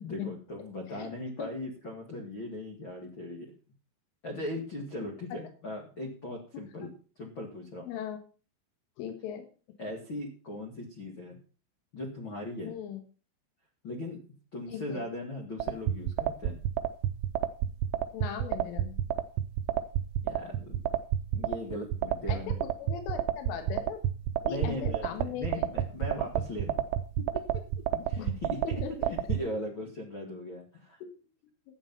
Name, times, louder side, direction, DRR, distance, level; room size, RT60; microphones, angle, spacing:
voice 1, 0.0-3.5 4.2-7.9 9.8-11.4 11.9-12.7 13.8-14.2 14.5-16.6 20.2-20.8 21.3-22.6 24.4-26.8 27.2-27.6 27.9-31.0, left 1 dB, 60° left, 1 dB, 1.3 m, -39 dB
voice 2, 7.9-8.2 9.0-9.5 12.6-13.0 14.7-15.0 18.1-19.0 22.3-22.4 22.8-24.0 24.4-25.5 28.2-28.3 28.6-29.1 31.0-31.1, left 8 dB, 80° left, 7 dB, 4.2 m, -38 dB
sound 1, 15.6-29.4, right 11 dB, 85° right, 3.2 m, -29 dB
12.5 x 8.7 x 5.5 m, 0.38 s
omnidirectional pair, 5.7 m